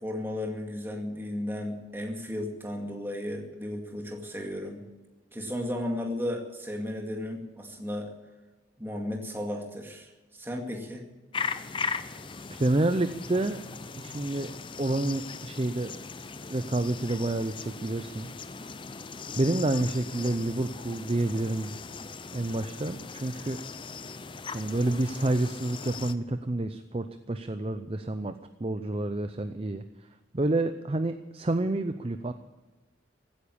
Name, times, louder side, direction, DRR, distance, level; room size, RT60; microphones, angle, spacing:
voice 1, 0.0-4.9 5.3-8.1 8.8-11.0, left 1 dB, 10° right, 2 dB, 2.2 m, -34 dB
sound 1, 11.3-26.1, left 5 dB, 25° left, 0.6 m, -39 dB
voice 2, 12.5-13.6 14.0-14.5 14.8-15.9 16.5-18.3 19.4-21.8 22.3-23.6 24.5-29.8 30.3-32.3, right 2 dB, 30° right, 9 dB, 0.5 m, -29 dB
16.0 x 9.6 x 8.5 m, 1.2 s
head